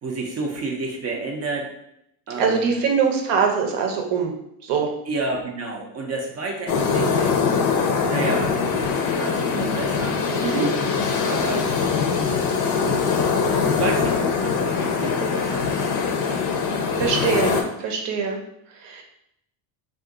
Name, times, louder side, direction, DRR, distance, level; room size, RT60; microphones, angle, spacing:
voice 1, 0.0-1.7 2.3-2.8 5.1-7.5 8.1-10.2 11.2-11.7 12.8-13.1 13.6-16.1, right 3 dB, 35° right, 1 dB, 0.5 m, -30 dB
voice 2, 2.4-4.3 4.6-4.9 10.4-10.7 17.0-18.4 18.8-19.0, right 6 dB, 65° right, 2 dB, 0.8 m, -23 dB
sound 1, 6.7-17.6, left 5 dB, 40° left, 0.6 m, -22 dB
2.5 x 2.5 x 3.7 m, 0.77 s
cardioid pair, 120°, 46 cm